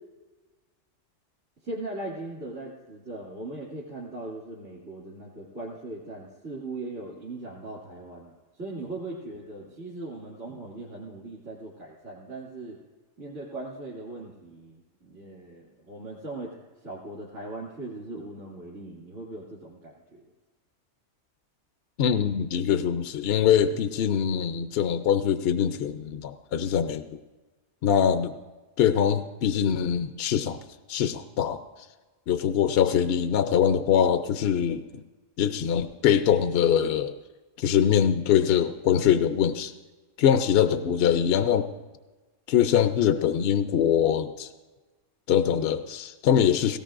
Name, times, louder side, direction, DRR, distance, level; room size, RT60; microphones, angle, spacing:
voice 1, 1.6-12.8 13.2-20.2, right 2 dB, 70° right, -7 dB, 2.8 m, -39 dB
voice 2, 22.0-27.1 27.8-28.4 28.8-30.6 30.9-31.6 32.3-34.8 35.4-37.1 37.6-39.7 40.2-41.7 42.5-44.5 45.3-46.8, left 9 dB, 65° left, 9 dB, 0.7 m, -23 dB
18.5 x 17.0 x 2.5 m, 1.3 s
omnidirectional pair, 1.3 m